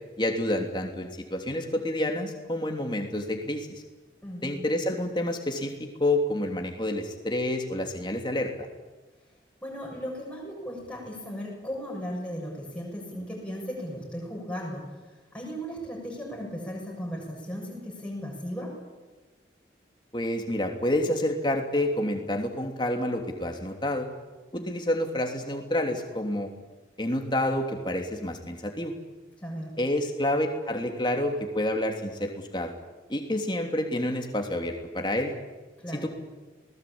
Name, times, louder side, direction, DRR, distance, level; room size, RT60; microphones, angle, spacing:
voice 1, 0.2-3.7 4.4-8.5 20.1-24.1 24.5-26.5 27.0-28.9 29.8-32.7 33.1-35.3 35.9-36.1, left 1 dB, 25° left, 3 dB, 3.1 m, -28 dB
voice 2, 4.2-4.5 9.6-14.9 15.3-18.7 24.5-24.7 29.4-29.7 35.8-36.1, equal, 5° left, -4 dB, 7.3 m, -36 dB
28.0 x 19.5 x 8.8 m, 1.2 s
head